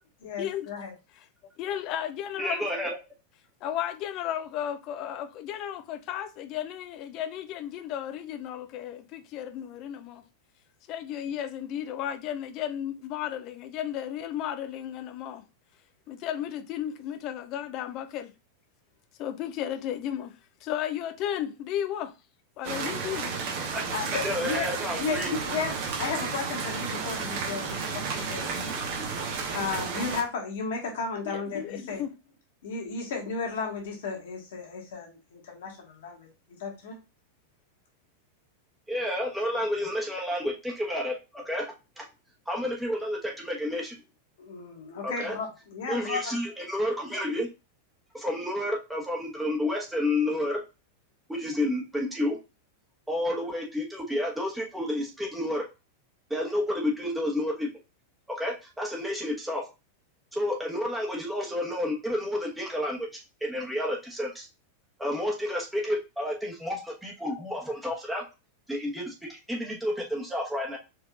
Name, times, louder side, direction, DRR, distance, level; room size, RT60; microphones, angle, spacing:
voice 1, 0.2-0.9 23.9-24.6 25.0-29.0 29.3-32.0 32.6-36.3 36.6-37.0 44.4-46.3, left 4 dB, 55° left, 1.5 m, -34 dB
voice 2, 1.6-2.7 3.6-10.2 10.9-15.5 16.1-18.3 19.2-22.1 22.6-23.3 31.2-32.1, left 10 dB, 40° left, 0.5 m, -34 dB
voice 3, 2.4-3.0 23.7-23.8 24.2-25.3 38.9-41.7 42.0-42.1 42.5-44.0 45.0-45.4 45.9-47.5 48.1-50.6 51.3-52.4 53.1-55.6 56.3-57.7 58.3-59.6 60.3-64.5 65.0-68.2 68.7-70.8, left 1 dB, 5° right, 1.1 m, -30 dB
sound 1, 22.6-30.2, right 5 dB, 45° right, 1.0 m, -32 dB
4.6 x 3.4 x 2.3 m
figure-of-eight pair, 90°, 0 cm